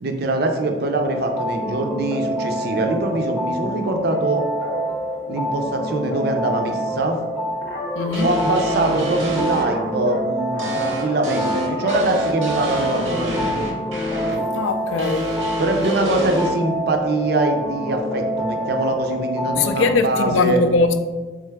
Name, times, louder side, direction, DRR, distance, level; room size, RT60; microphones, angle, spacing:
voice 1, 0.0-4.4 5.3-7.2 8.2-13.7 15.6-20.6, right 2 dB, 50° right, 0.4 m, -23 dB
sound 1, 1.0-19.9, equal, 5° left, 0.5 m, -27 dB
sound 2, 4.6-4.8 7.6-8.2 9.6-10.2 10.5-12.1 12.4-12.5 14.1-14.7 15.8-16.3, left 1 dB, 50° left, 0.7 m, -32 dB
voice 2, 8.0-8.3 14.5-15.3 19.5-21.0, left 4 dB, 75° left, 0.3 m, -20 dB
sound 3, 8.1-9.6 10.6-14.4 15.0-16.5, equal, 85° right, 0.8 m, -27 dB
3.6 x 3.3 x 3.4 m
head